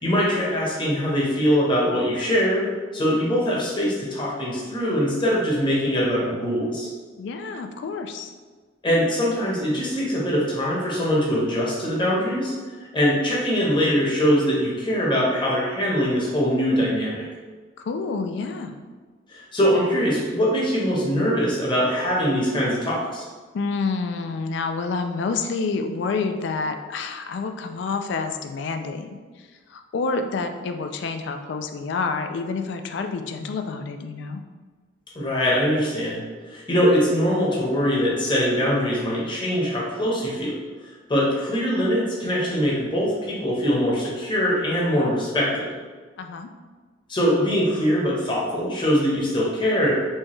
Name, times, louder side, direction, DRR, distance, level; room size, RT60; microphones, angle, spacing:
voice 1, 0.0-2.7 2.9-6.9 8.8-12.5 12.9-17.2 19.3-23.2 35.1-40.5 41.1-45.7 47.1-49.9, equal, 25° left, -5 dB, 0.9 m, -22 dB
voice 2, 7.2-8.3 17.8-18.7 23.5-29.2 29.7-34.4 46.2-46.5, left 4 dB, 70° left, 6 dB, 0.3 m, -28 dB
4.4 x 2.3 x 3.1 m, 1.4 s
head